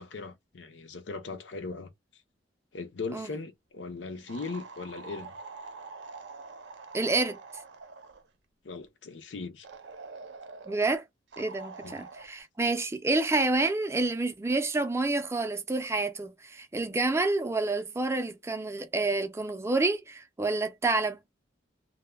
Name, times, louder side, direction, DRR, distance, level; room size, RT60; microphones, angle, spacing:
voice 1, 0.0-1.9 2.7-5.3 8.6-9.7 11.8-12.0, left 4 dB, 85° left, 0.6 m, -39 dB
sound 1, 4.3-8.3 9.6-10.8 11.3-12.3, right 4 dB, 70° right, 0.5 m, -45 dB
voice 2, 6.9-7.4 10.7-11.0 11.4-21.2, right 2 dB, 15° right, 0.3 m, -28 dB
2.1 x 2.1 x 3.2 m
head